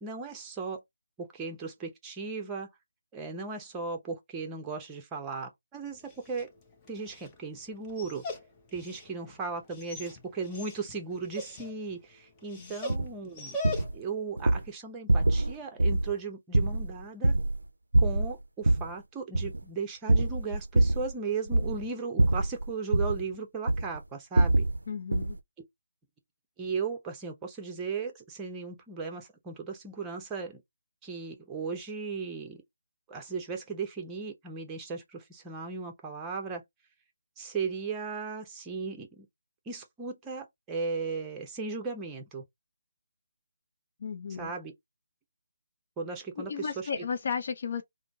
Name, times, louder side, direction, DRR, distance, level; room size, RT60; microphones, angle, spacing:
voice 1, 0.0-0.8 1.2-2.7 3.1-6.5 6.9-8.2 8.7-13.6 13.9-17.3 18.0-24.7 26.6-30.6 31.0-32.6 33.1-36.6 37.4-39.3 39.7-42.4 44.4-44.7 46.0-46.9, right 4 dB, 15° right, 0.8 m, -36 dB
Dog, 5.9-14.2, left 2 dB, 15° left, 0.8 m, -42 dB
voice 2, 12.6-13.0 24.9-25.4 44.0-44.5 46.4-47.8, left 6 dB, 50° left, 0.6 m, -34 dB
sound 1, 12.9-13.1 13.6-14.0 14.4-14.7 15.1-15.5 15.8-16.1 16.5-17.6 17.9-18.9 19.3-19.6 20.1-21.1 21.5-21.9 22.2-23.2 23.7-24.0 24.4-24.8 25.1-25.4, right 2 dB, 85° right, 0.4 m, -25 dB
3.7 x 2.1 x 3.5 m
figure-of-eight pair, 155°, 0 cm